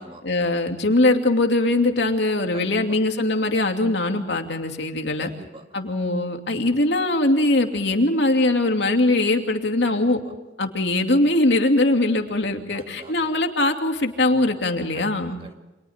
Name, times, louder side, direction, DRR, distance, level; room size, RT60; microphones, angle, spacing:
voice 1, 0.2-5.3 5.7-10.2 10.6-15.4, left 2 dB, 80° left, 4 dB, 2.7 m, -21 dB
voice 2, 2.5-3.0 5.2-5.7 9.9-10.2 12.7-13.3 14.9-15.6, right 1 dB, 30° right, 4 dB, 2.2 m, -43 dB
30.0 x 26.5 x 3.7 m, 1.1 s
head